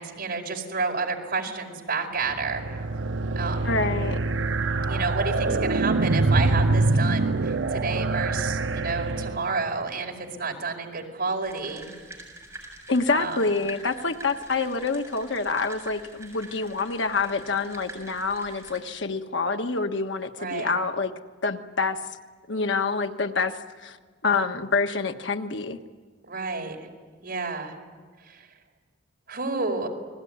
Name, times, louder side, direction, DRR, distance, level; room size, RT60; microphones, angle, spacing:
voice 1, 0.0-2.8 3.3-3.8 4.9-11.9 13.1-13.4 20.4-20.7 26.3-26.9 27.2-27.7 28.3-28.5 29.3-29.9, right 4 dB, 55° right, 2 dB, 4.9 m, -30 dB
sound 1, 2.3-9.7, right 3 dB, 75° right, 0.8 m, -25 dB
voice 2, 3.6-4.2 12.9-21.1 21.4-22.0 22.5-23.5 23.8-24.0 24.2-25.8, left 4 dB, 75° left, 6 dB, 1.4 m, -27 dB
sound 2, 11.4-18.8, right 2 dB, 15° right, 7.2 m, -45 dB
29.5 x 20.5 x 9.6 m, 1.5 s
head